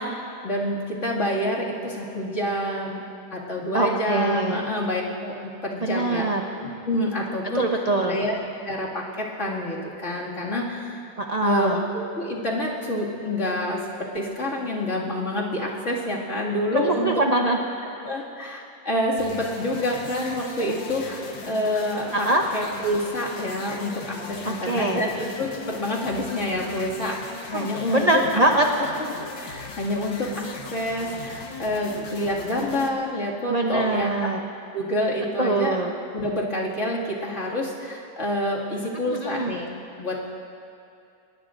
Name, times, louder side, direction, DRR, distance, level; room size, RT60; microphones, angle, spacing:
voice 1, 0.4-3.0 3.3-6.3 6.5-7.7 8.0-8.4 8.7-11.0 11.4-13.8 14.1-17.1 18.0-27.2 27.5-28.5 28.8-29.1 29.3-34.1 34.7-35.8 36.1-39.7 40.0-40.2, left 1 dB, 40° left, -5 dB, 2.5 m, -27 dB
voice 2, 3.7-4.6 5.8-6.5 7.5-8.2 11.2-11.8 16.7-17.6 17.9-18.2 22.1-22.4 24.4-25.0 27.5-28.6 33.5-34.4 35.4-35.9 39.1-39.5, right 2 dB, 50° right, 1 dB, 0.4 m, -23 dB
sound 1, 19.2-32.9, left 4 dB, 75° left, 2.0 m, -39 dB
24.0 x 21.0 x 2.6 m, 2.5 s
omnidirectional pair, 2.1 m